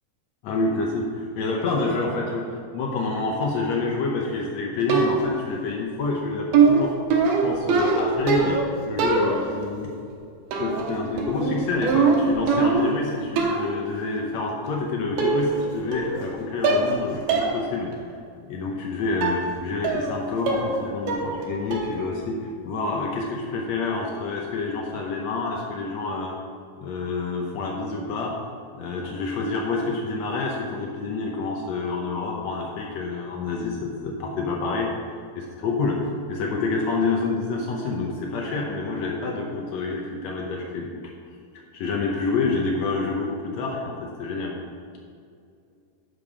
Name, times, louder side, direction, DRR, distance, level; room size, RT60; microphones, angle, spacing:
voice 1, 0.4-6.9 7.4-9.9 10.6-17.9 18.5-26.4 26.8-28.4 28.7-34.9 35.3-41.0 41.5-44.5, left 3 dB, 85° left, 0 dB, 1.5 m, -28 dB
sound 1, 4.9-5.5 6.5-8.7 9.0-9.7 10.5-10.9 11.2-13.0 13.4-13.7 14.7-14.8 15.2-15.7 15.9-16.3 16.6-17.0 17.3-17.5 17.9-18.0 19.2-19.4 19.8-20.2 20.5-20.8 21.1-21.4 21.7-22.1, right 4 dB, 90° right, 3.1 m, -22 dB
9.2 x 6.8 x 4.9 m, 2.3 s
omnidirectional pair, 4.3 m